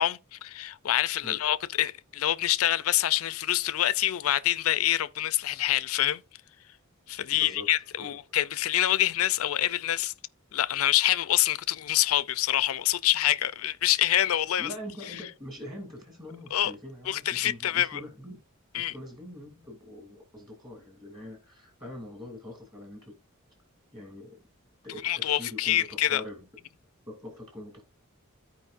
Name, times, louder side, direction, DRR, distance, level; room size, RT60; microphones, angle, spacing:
voice 1, 0.0-6.2 7.1-10.1 10.5-14.7 16.5-16.7 17.1-18.0 18.7-18.9 25.0-26.2, left 13 dB, 80° left, 0.4 m, -26 dB
voice 2, 7.3-7.7 8.0-8.2 14.6-18.4 18.7-23.1 23.9-24.4 24.8-26.5 27.1-27.8, left 1 dB, 20° right, 2.6 m, -43 dB
14.0 x 4.7 x 2.5 m
head